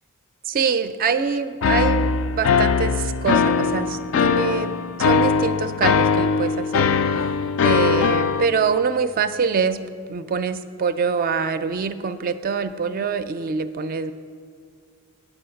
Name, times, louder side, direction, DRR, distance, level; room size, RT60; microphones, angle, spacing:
voice 1, 0.5-7.0 7.6-14.1, right 5 dB, 45° right, 11 dB, 0.4 m, -24 dB
sound 1, 1.6-8.5, left 5 dB, 65° left, 0.4 m, -20 dB
9.0 x 7.0 x 5.7 m, 2.1 s
head